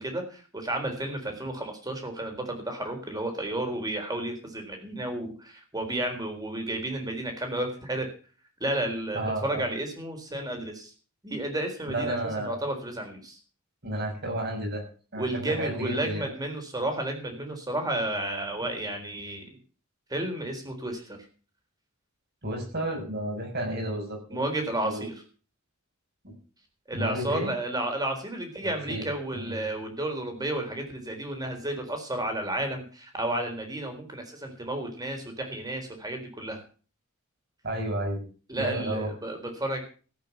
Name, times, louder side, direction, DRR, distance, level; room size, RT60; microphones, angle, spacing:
voice 1, 0.0-8.1 8.6-10.9 11.2-13.4 15.1-19.6 20.1-21.2 24.3-25.2 26.9-36.6 38.5-39.8, right 1 dB, 20° right, 4 dB, 4.0 m, -32 dB
voice 2, 9.1-9.7 11.9-12.6 13.8-14.8 15.1-16.3 22.4-24.4 24.8-25.0 26.2-26.3 26.9-27.5 28.6-29.0 29.3-29.6 37.6-38.2 38.6-39.1, right 1 dB, 50° right, 2 dB, 6.7 m, -32 dB
15.0 x 8.5 x 7.1 m, 0.39 s
head